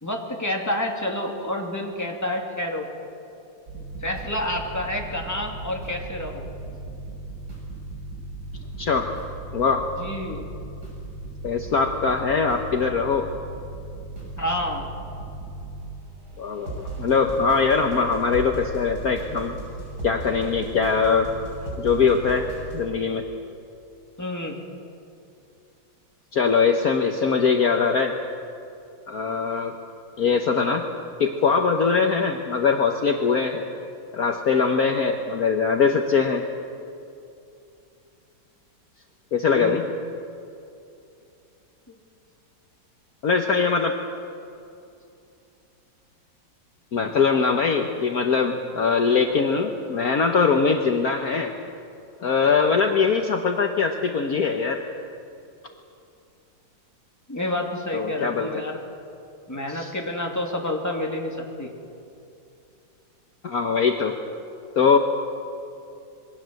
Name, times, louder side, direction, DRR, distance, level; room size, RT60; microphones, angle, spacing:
voice 1, 0.0-2.9 4.0-6.5 10.0-10.5 14.4-14.9 24.2-24.6 39.5-39.8 41.9-42.0 57.3-58.8 59.5-61.7, left 1 dB, 10° left, 1 dB, 2.8 m, -29 dB
sound 1, 3.7-22.8, right 2 dB, 55° right, 7.0 m, -37 dB
voice 2, 8.8-9.1 9.5-9.8 11.4-13.3 16.4-19.6 20.0-21.3 21.8-22.5 22.7-23.2 26.3-28.1 29.1-29.7 30.2-30.8 31.2-33.7 34.1-36.4 39.3-39.9 43.2-43.9 46.9-51.5 52.2-54.8 57.9-58.5 59.7-59.9 63.4-64.1 64.8-65.0, left 5 dB, 55° left, 4 dB, 1.5 m, -22 dB
27.0 x 22.0 x 7.8 m, 2.7 s
omnidirectional pair, 2.0 m